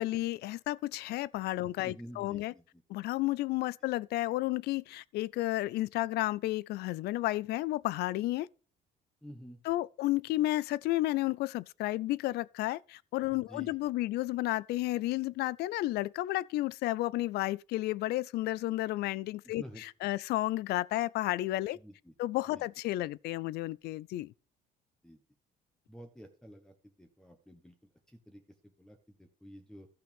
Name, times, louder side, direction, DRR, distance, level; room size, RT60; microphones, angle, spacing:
voice 1, 0.0-2.5 2.9-8.5 9.6-21.8 22.2-24.3, left 16 dB, 75° left, 0.4 m, -32 dB
voice 2, 1.8-2.8 9.2-9.6 13.3-13.8 19.4-19.8 21.8-22.1 22.5-22.7 25.0-25.2 25.9-29.9, equal, 5° left, 1.2 m, -50 dB
13.0 x 5.8 x 5.3 m
cardioid pair, 110°, 17 cm